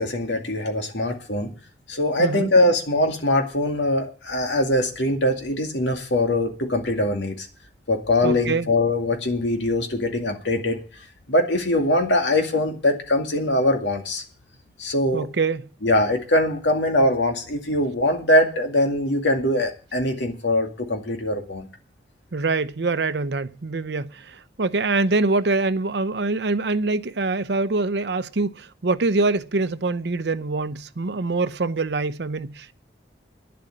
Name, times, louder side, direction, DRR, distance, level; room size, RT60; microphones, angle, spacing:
voice 1, 0.0-1.5 1.9-7.5 7.9-10.8 11.3-14.2 14.8-15.3 15.8-21.7, left 1 dB, 90° left, 2.3 m, -22 dB
voice 2, 2.2-2.5 8.2-8.7 15.1-15.6 22.3-32.7, right 3 dB, 70° right, 0.7 m, -24 dB
10.5 x 8.0 x 9.8 m
head